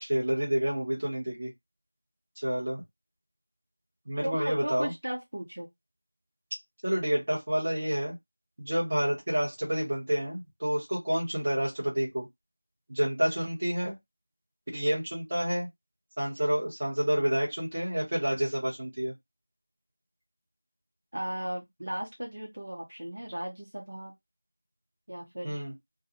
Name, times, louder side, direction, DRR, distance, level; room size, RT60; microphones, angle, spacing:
voice 1, 0.0-1.5 2.4-2.8 4.1-4.9 6.8-8.2 8.6-12.3 12.9-14.0 14.7-15.7 16.2-19.1 25.4-25.7, equal, 25° right, 1.2 m, -29 dB
voice 2, 4.2-5.7 21.1-24.1 25.1-25.5, equal, 60° right, 1.0 m, -36 dB
2.4 x 2.3 x 2.9 m
figure-of-eight pair, 175°, 0 cm